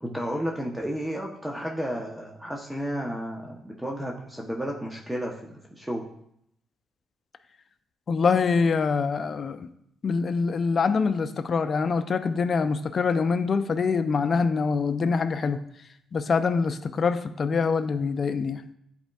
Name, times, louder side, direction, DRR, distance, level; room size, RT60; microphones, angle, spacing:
voice 1, 0.0-6.0, equal, 10° right, -1 dB, 0.8 m, -32 dB
voice 2, 8.1-9.7 10.0-15.6 16.1-18.6, left 5 dB, 45° left, 10 dB, 0.4 m, -24 dB
10.5 x 4.2 x 2.3 m, 0.74 s
cardioid pair, 90°, 0 cm